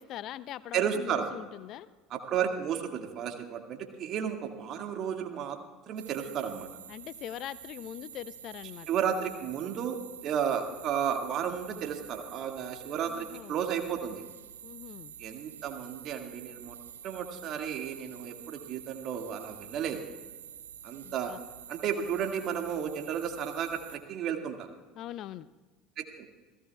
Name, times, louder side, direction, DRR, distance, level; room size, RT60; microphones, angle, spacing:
voice 1, 0.0-1.9 6.9-8.9 13.1-13.6 14.6-15.1 21.0-21.4 25.0-25.5, left 12 dB, 50° left, 18 dB, 0.5 m, -42 dB
voice 2, 0.7-1.3 2.1-5.6 5.9-6.7 8.9-14.2 15.2-16.8 17.0-20.1 20.8-21.3 21.7-24.7 26.0-26.3, right 8 dB, 45° right, 4 dB, 2.0 m, -33 dB
sound 1, 6.0-24.0, right 9 dB, 75° right, 0.8 m, -48 dB
29.0 x 16.5 x 2.3 m, 1.3 s
figure-of-eight pair, 65°, 0 cm